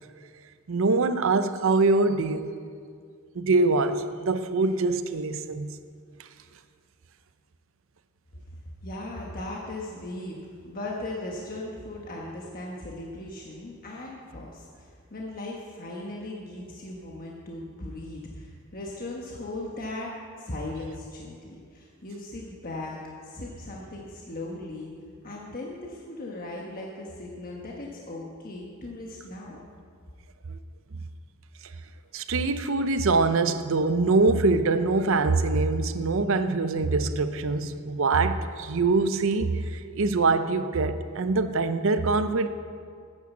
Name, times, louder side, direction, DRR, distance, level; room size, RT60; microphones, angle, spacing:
voice 1, 0.7-2.5 3.3-5.7 6.2-6.3 30.5-30.6 31.6-31.7 32.1-42.5, right 3 dB, 70° right, 0.6 m, -24 dB
voice 2, 8.8-24.9 25.2-29.6, left 2 dB, 45° left, 1.2 m, -38 dB
9.9 x 8.7 x 7.1 m
head